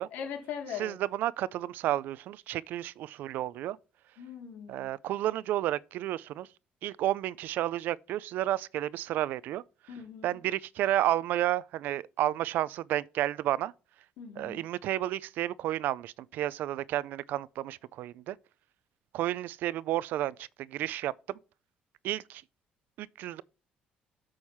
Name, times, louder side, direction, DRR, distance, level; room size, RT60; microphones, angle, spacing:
voice 1, 0.1-1.0 4.2-4.9 9.9-10.4 14.2-14.6, left 7 dB, 90° left, 3.4 m, -40 dB
voice 2, 0.8-3.8 4.7-6.5 6.8-9.6 10.2-13.7 14.4-18.4 19.1-21.1 22.0-22.4 23.0-23.4, right 13 dB, 70° right, 0.4 m, -31 dB
7.3 x 6.2 x 4.5 m
cardioid pair, 155°, 3 cm